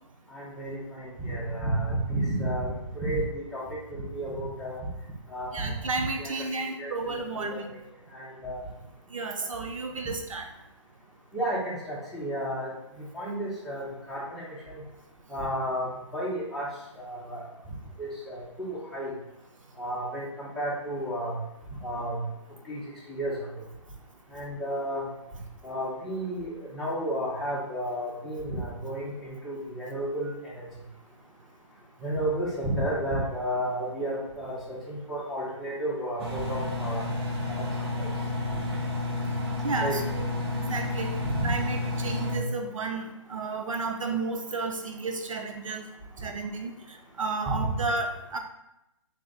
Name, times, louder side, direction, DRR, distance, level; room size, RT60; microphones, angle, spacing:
voice 1, 0.3-2.7 3.0-3.6 3.9-4.8 5.3-5.8 6.2-6.3 6.6-6.9 7.4-7.6 8.1-8.6 11.3-12.7 13.1-14.8 15.3-16.7 17.0-17.4 18.0-19.1 19.8-21.4 21.8-22.2 22.7-22.8 23.1-23.4 24.3-25.0 25.6-30.6 32.0-37.0 37.5-37.6 38.0-38.1 39.8-40.0 41.2-41.3, right 1 dB, ahead, -8 dB, 0.7 m, -32 dB
voice 2, 5.5-7.7 9.1-10.5 25.3-25.4 39.6-45.9 46.2-48.4, right 3 dB, 90° right, 4 dB, 0.5 m, -32 dB
Engine, 36.2-42.4, left 2 dB, 50° right, 0.8 m, -31 dB
3.4 x 2.4 x 3.8 m, 0.88 s
hypercardioid pair, 145°, 16 cm